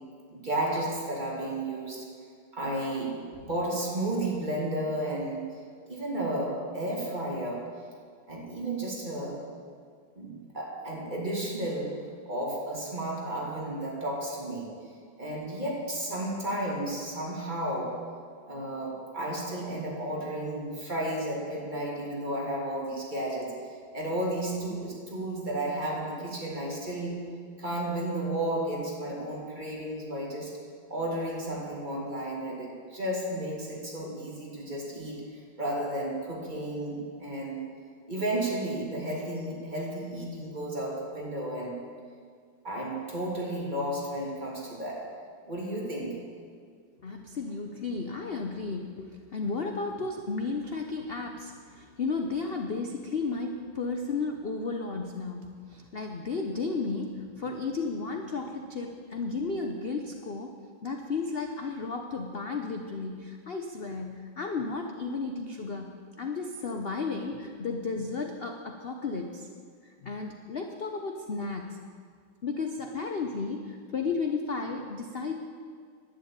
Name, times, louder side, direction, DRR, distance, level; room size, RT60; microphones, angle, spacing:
voice 1, 0.3-2.0 2.5-5.5 5.9-7.7 8.3-9.4 10.2-14.7 15.2-18.0 18.5-23.5 23.9-27.3 27.6-30.5 30.9-35.3 35.6-37.7 38.1-41.8 42.6-45.1 45.5-46.2, right 1 dB, 25° right, -4 dB, 3.0 m, -33 dB
voice 2, 47.0-60.5 60.8-69.5 69.8-71.8 72.4-75.3, left 4 dB, 50° left, 4 dB, 0.7 m, -33 dB
11.0 x 9.5 x 8.8 m, 2.1 s
omnidirectional pair, 2.1 m